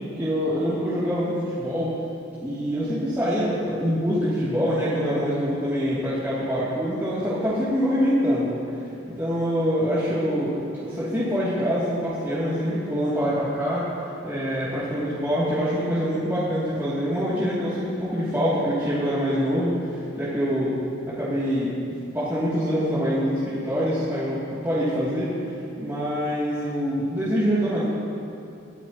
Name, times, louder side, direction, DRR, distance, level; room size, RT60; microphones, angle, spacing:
voice 1, 0.1-1.9 2.4-8.6 9.0-10.6 10.8-13.9 14.2-20.7 21.1-21.7 22.1-25.3 25.8-27.8, equal, 10° right, -12 dB, 2.6 m, -25 dB
22.5 x 14.5 x 3.0 m, 2.7 s
head